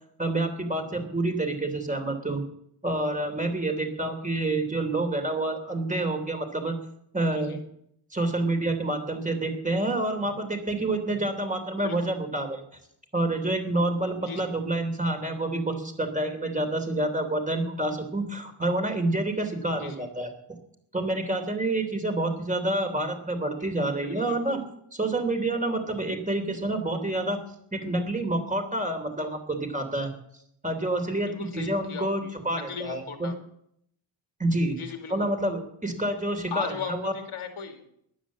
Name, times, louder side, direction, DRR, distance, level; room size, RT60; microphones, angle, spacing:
voice 1, 0.2-2.4 2.8-6.7 7.1-7.6 8.1-12.6 13.1-20.3 20.9-24.6 24.9-27.4 27.7-30.1 30.6-33.3 34.4-34.8 35.1-37.1, right 2 dB, 15° right, 5 dB, 3.2 m, -28 dB
voice 2, 11.8-12.1 14.2-14.5 19.8-20.0 23.9-24.6 31.2-33.3 34.7-35.3 36.5-37.8, left 6 dB, 85° left, 5 dB, 2.6 m, -38 dB
15.0 x 11.0 x 7.4 m, 0.73 s
cardioid pair, 85°, 49 cm